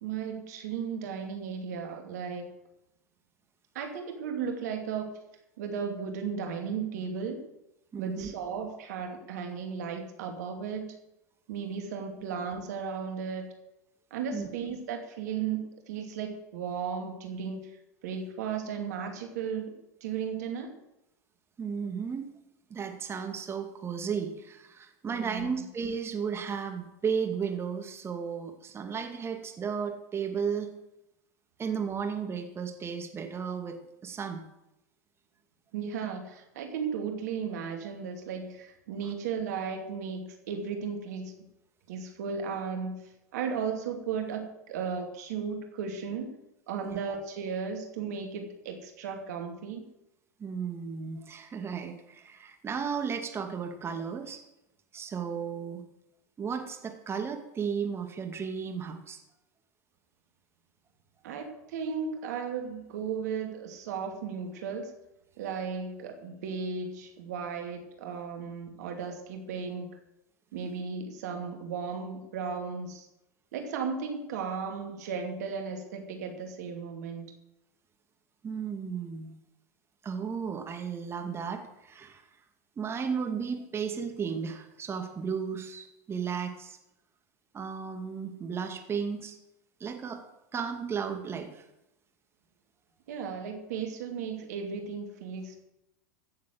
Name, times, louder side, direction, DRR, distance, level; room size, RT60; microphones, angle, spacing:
voice 1, 0.0-2.5 3.7-5.2 5.6-7.5 8.0-11.0 11.5-13.5 14.1-17.7 18.0-19.7 20.0-20.8 25.1-25.6 35.7-41.3 41.9-46.4 46.7-49.9 61.2-64.9 65.4-70.0 70.5-73.1 73.5-77.3 93.1-95.6, right 6 dB, 70° right, 4 dB, 2.7 m, -35 dB
voice 2, 7.9-8.3 14.3-14.5 21.6-22.3 22.7-30.7 31.6-34.4 46.8-47.0 50.4-54.4 54.9-55.8 56.4-59.2 78.4-79.3 80.0-82.3 82.8-86.8 87.5-89.4 89.8-90.2 90.5-91.7, right 6 dB, 25° right, 5 dB, 2.3 m, -34 dB
15.5 x 7.5 x 7.7 m, 0.89 s
hypercardioid pair, 85°, 9 cm